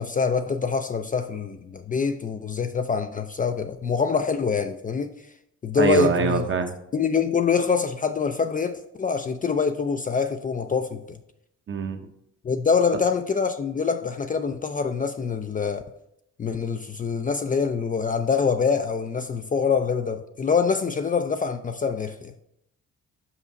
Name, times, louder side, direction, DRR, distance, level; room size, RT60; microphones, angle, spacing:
voice 1, 0.0-5.1 5.6-6.4 6.9-11.2 12.4-15.8 16.4-22.3, left 5 dB, 30° left, 0.4 m, -25 dB
voice 2, 5.8-6.7 11.7-12.0, right 4 dB, 40° right, 0.9 m, -23 dB
5.7 x 5.4 x 4.0 m
cardioid pair, 90°, 30 cm